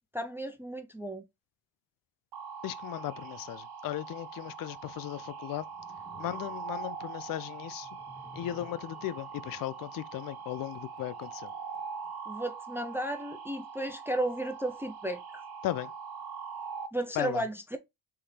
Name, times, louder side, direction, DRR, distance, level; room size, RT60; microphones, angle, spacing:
voice 1, 0.1-1.2 12.3-15.4 16.9-17.8, right 1 dB, 5° right, 0.6 m, -34 dB
sound 1, 2.3-16.9, right 6 dB, 50° right, 1.0 m, -42 dB
voice 2, 2.6-5.7 6.2-7.9 8.3-11.5 15.6-15.9 17.2-17.4, left 14 dB, 45° left, 0.5 m, -36 dB
sound 2, 5.4-12.4, left 2 dB, 15° left, 1.9 m, -57 dB
3.7 x 3.2 x 4.2 m
supercardioid pair, 80°, 49 cm